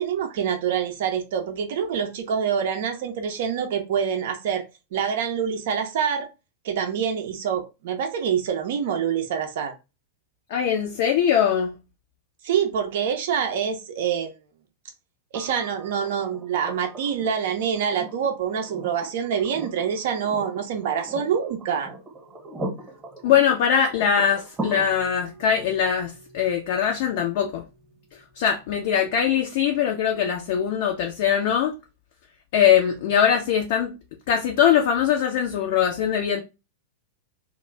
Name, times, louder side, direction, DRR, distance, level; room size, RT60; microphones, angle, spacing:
voice 1, 0.0-4.7 4.9-6.3 6.6-9.7 12.4-14.3 15.3-21.9, right 7 dB, 55° right, 0.4 m, -26 dB
voice 2, 10.5-11.7 23.2-27.6 28.4-31.7 32.5-33.9 34.3-36.4, left 8 dB, 55° left, 0.4 m, -21 dB
sound 1, 15.3-29.3 31.0-31.1, right 2 dB, 20° right, 0.8 m, -40 dB
2.3 x 2.1 x 3.2 m
figure-of-eight pair, 95°, 0 cm